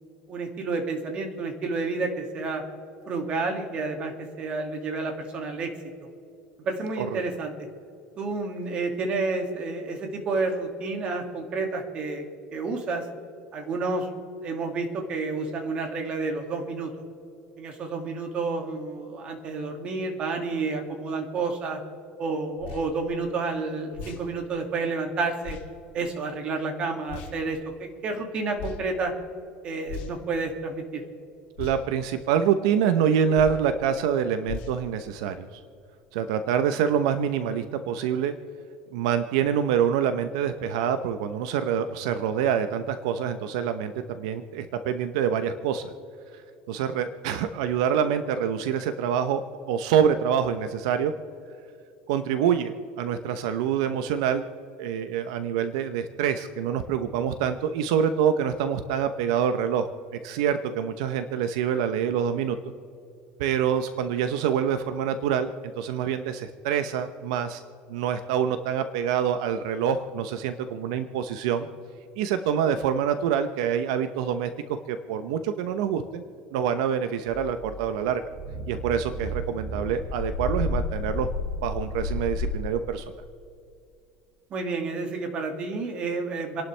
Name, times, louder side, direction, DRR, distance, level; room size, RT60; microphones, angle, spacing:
voice 1, 0.3-2.6 3.1-5.7 6.0-6.1 6.6-7.5 8.2-12.2 12.5-13.1 13.5-14.1 14.4-16.9 17.6-21.8 22.2-25.6 25.9-29.1 29.6-31.0 84.5-86.6, right 3 dB, 35° right, 3 dB, 2.4 m, -30 dB
sound 1, 22.6-22.9 23.9-24.2 25.4-25.6 27.1-27.3 28.6-28.8 29.8-30.3 31.6-31.8 33.3-33.7 34.5-34.8, left 6 dB, 60° left, 3.4 m, -37 dB
voice 2, 31.6-35.6 36.1-38.3 38.9-45.9 46.7-49.4 49.7-51.1 52.1-54.4 54.8-59.9 60.2-62.6 63.4-65.5 65.8-67.6 67.9-71.7 72.2-74.5 74.9-76.2 76.5-78.2 78.7-81.3 81.6-83.0, right 8 dB, 85° right, 9 dB, 0.9 m, -26 dB
sound 2, 77.3-82.6, left 2 dB, 20° left, 4.4 m, -32 dB
29.5 x 11.5 x 3.4 m, 2.6 s
cardioid pair, 155°, 3 cm